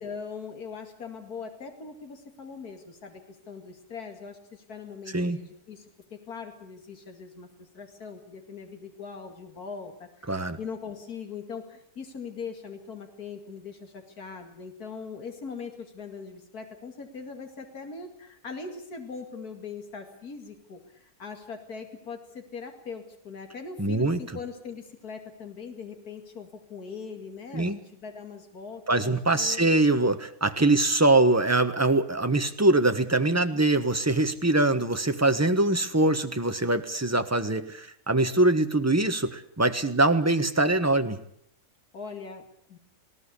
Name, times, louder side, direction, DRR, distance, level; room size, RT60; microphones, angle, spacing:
voice 1, 0.0-5.8 6.1-29.7 41.9-42.4 42.7-42.8, left 5 dB, 80° left, 5 dB, 2.8 m, -41 dB
voice 2, 10.3-10.6 23.8-24.2 27.5-27.8 28.9-41.2, right 2 dB, 10° right, 8 dB, 1.2 m, -23 dB
20.0 x 17.5 x 8.4 m, 0.70 s
omnidirectional pair, 1.6 m